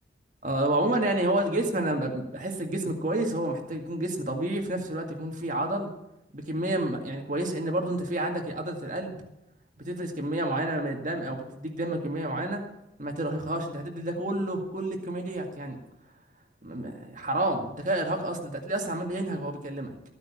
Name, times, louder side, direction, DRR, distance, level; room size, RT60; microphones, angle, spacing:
voice 1, 0.4-5.9 6.3-9.2 9.8-12.6 13.0-15.8 16.6-20.2, right 1 dB, 40° right, 2 dB, 2.0 m, -29 dB
14.5 x 9.5 x 7.2 m, 0.87 s
head